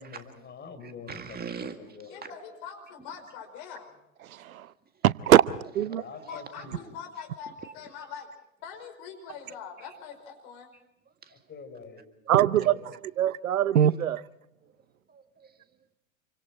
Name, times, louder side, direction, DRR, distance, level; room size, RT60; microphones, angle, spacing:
voice 1, 0.0-2.4 5.9-6.9 11.3-12.1 12.4-13.1, left 5 dB, 25° left, 4.4 m, -46 dB
voice 2, 0.8-2.3 4.9-5.0 5.9-6.6 7.2-7.7 9.8-9.9 10.7-11.5 13.8-13.9 14.6-14.8 15.1-15.8, right 6 dB, 20° right, 1.8 m, -45 dB
voice 3, 2.1-4.0 6.2-8.3 8.6-10.7, left 7 dB, 55° left, 5.4 m, -43 dB
voice 4, 4.3-4.7 5.0-6.0 12.3-12.8 13.2-14.2, right 11 dB, 80° right, 0.7 m, -22 dB
28.0 x 24.5 x 4.5 m
hypercardioid pair, 90°, 41 cm